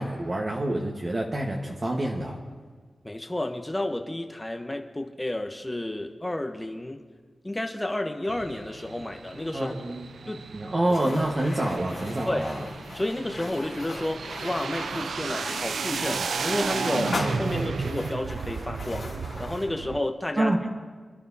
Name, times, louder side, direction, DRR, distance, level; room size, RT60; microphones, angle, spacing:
voice 1, 0.0-2.4 9.5-12.6 20.4-20.7, right 1 dB, 40° right, -1 dB, 1.4 m, -27 dB
voice 2, 3.0-7.0 7.4-9.7 10.3-10.5 12.3-12.4 12.9-19.1 19.4-20.6, left 1 dB, 15° left, 5 dB, 1.0 m, -31 dB
sound 1, 8.3-20.0, right 5 dB, 85° right, 0.4 m, -33 dB
sound 2, 10.8-19.7, left 3 dB, 75° left, 2.7 m, -38 dB
28.0 x 11.0 x 2.8 m, 1.5 s
cardioid pair, 65°, 0 cm